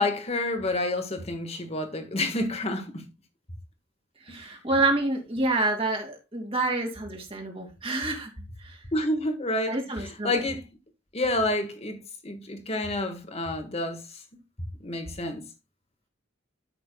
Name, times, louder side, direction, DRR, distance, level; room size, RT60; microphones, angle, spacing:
voice 1, 0.0-3.1 4.3-4.5 8.9-10.6 11.1-14.2 14.8-15.5, left 2 dB, 35° left, 1.6 m, -29 dB
voice 2, 4.2-8.3 8.6-8.8 9.7-10.4, right 2 dB, 30° right, 2.4 m, -28 dB
13.0 x 6.0 x 2.3 m
head